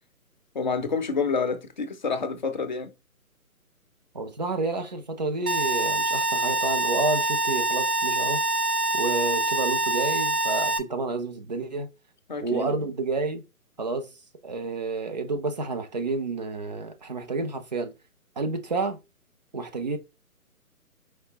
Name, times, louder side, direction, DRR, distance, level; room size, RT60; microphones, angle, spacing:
voice 1, 0.5-2.9 12.3-12.9, left 5 dB, 35° left, 0.6 m, -28 dB
voice 2, 4.1-8.4 8.9-11.9 12.4-13.4 13.8-14.1 14.4-17.9 18.4-19.0 19.5-20.0, right 3 dB, 30° right, 0.5 m, -30 dB
sound 1, 5.5-10.8, right 2 dB, 80° right, 0.9 m, -25 dB
4.7 x 3.0 x 2.9 m
figure-of-eight pair, 145°, 44 cm